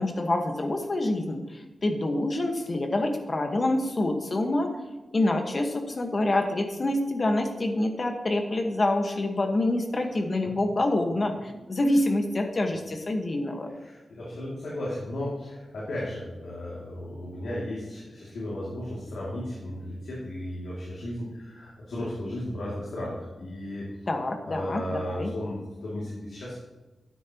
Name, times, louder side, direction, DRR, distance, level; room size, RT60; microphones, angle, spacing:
voice 1, 0.0-4.7 5.1-13.7 24.1-25.3, left 2 dB, 40° left, 4 dB, 1.5 m, -26 dB
voice 2, 13.7-23.9 24.4-26.6, left 1 dB, 90° left, -7 dB, 2.6 m, -35 dB
12.5 x 9.2 x 3.0 m, 1.1 s
cardioid pair, 75°, 0 cm